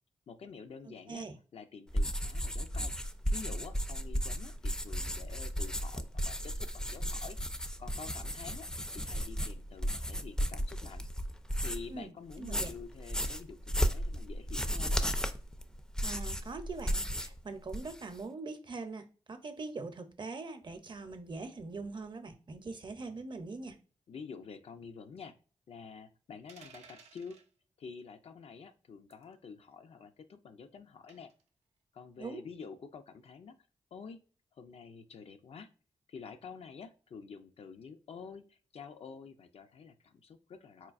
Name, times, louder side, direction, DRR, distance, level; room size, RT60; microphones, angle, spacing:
voice 1, 0.3-1.3 1.5-2.9 3.3-11.1 11.6-15.1 24.1-25.4 25.7-27.4 27.8-31.3 31.9-33.6 33.9-34.2 34.6-35.7 36.1-40.9, left 5 dB, 65° left, 0.5 m, -48 dB
sound 1, 1.9-12.0 12.3-17.4 17.6-18.2, equal, 5° left, 0.4 m, -34 dB
voice 2, 11.9-12.7 16.0-23.8 32.2-32.4, right 3 dB, 45° right, 0.6 m, -42 dB
sound 2, 26.5-27.5 29.1-29.3 31.1-31.4, right 5 dB, 85° right, 0.5 m, -56 dB
4.4 x 2.3 x 2.4 m
supercardioid pair, 45°, 11 cm